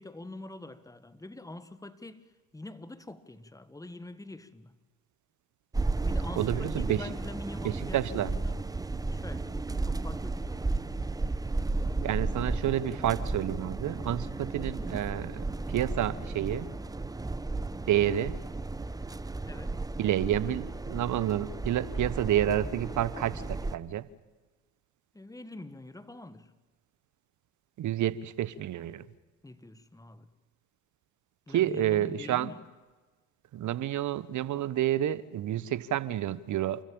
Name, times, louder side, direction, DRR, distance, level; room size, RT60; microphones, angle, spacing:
voice 1, 0.0-4.7 6.0-8.6 9.0-10.9 19.5-19.8 25.1-26.5 29.4-30.3 31.5-32.6, left 2 dB, 10° left, 1.6 m, -45 dB
sound 1, 5.7-23.8, right 3 dB, 10° right, 0.8 m, -34 dB
voice 2, 6.4-7.0 7.6-8.3 12.0-16.7 17.9-18.4 20.0-24.1 27.8-29.0 31.5-32.5 33.5-36.8, right 12 dB, 45° right, 1.2 m, -29 dB
28.5 x 14.0 x 8.9 m
hypercardioid pair, 70°, 40 cm